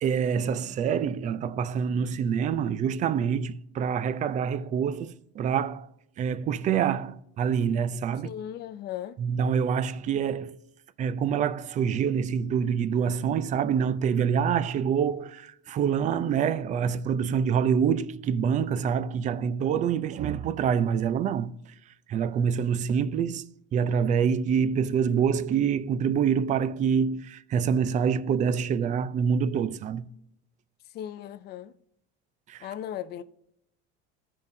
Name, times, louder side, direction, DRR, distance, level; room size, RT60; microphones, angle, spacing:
voice 1, 0.0-5.9 6.2-8.3 9.2-10.6 11.0-21.5 22.1-30.1 32.5-32.7, right 7 dB, 25° right, 0.4 m, -26 dB
voice 2, 8.2-9.2 30.9-31.7 32.6-33.2, left 11 dB, 35° left, 0.4 m, -37 dB
15.5 x 5.3 x 2.7 m
cardioid pair, 155°, 29 cm